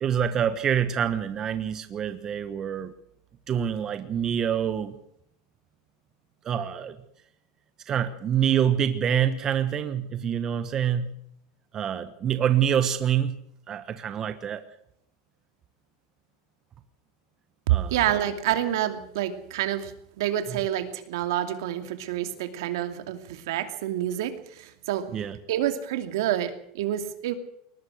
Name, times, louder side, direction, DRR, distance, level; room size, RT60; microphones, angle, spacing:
voice 1, 0.0-2.9 3.5-5.0 6.4-7.0 7.9-11.1 11.7-14.6 17.7-17.9 20.5-20.6 25.1-25.4, right 9 dB, 25° right, 10 dB, 1.2 m, -26 dB
voice 2, 17.7-25.1 25.5-27.3, right 12 dB, 75° right, 8 dB, 2.7 m, -28 dB
21.5 x 19.0 x 6.4 m, 0.72 s
supercardioid pair, 145°, 2 cm